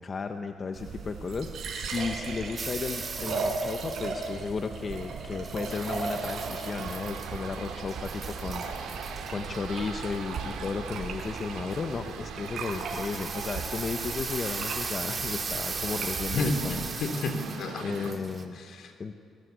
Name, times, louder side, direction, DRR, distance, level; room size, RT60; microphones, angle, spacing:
voice 1, 0.0-16.9 17.8-18.6 19.0-19.1, left 4 dB, 40° left, 6 dB, 1.2 m, -34 dB
sound 1, 0.7-16.9, right 4 dB, 65° right, 5.0 m, -37 dB
sound 2, 2.6-4.5 5.4-7.5 7.7-9.6 11.0-11.4 11.7-11.9 12.6-18.4, right 4 dB, 35° right, 2.6 m, -38 dB
sound 3, 5.7-18.1, right 6 dB, 85° right, 3.0 m, -42 dB
voice 2, 16.3-18.1 18.6-18.9, left 2 dB, 65° left, 6 dB, 3.3 m, -31 dB
29.0 x 22.5 x 8.3 m, 2.4 s
cardioid pair, 90°, 0 cm